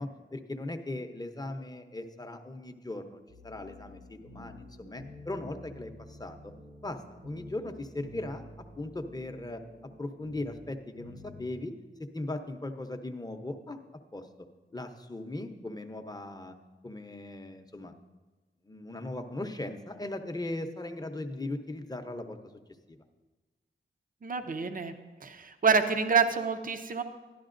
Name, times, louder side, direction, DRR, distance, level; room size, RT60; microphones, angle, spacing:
voice 1, 0.0-6.5 6.8-8.5 8.8-9.6 10.0-11.7 12.1-13.8 14.1-14.3 14.7-16.6 16.8-17.9 18.6-22.4 22.9-23.0, left 2 dB, 20° left, 7 dB, 0.7 m, -38 dB
sound 1, 3.3-11.5, left 1 dB, 80° right, 1.5 m, -50 dB
voice 2, 24.2-24.9 25.2-27.0, right 5 dB, 40° right, 8 dB, 0.6 m, -27 dB
12.5 x 11.0 x 2.5 m, 1.2 s
cardioid pair, 65°, 21 cm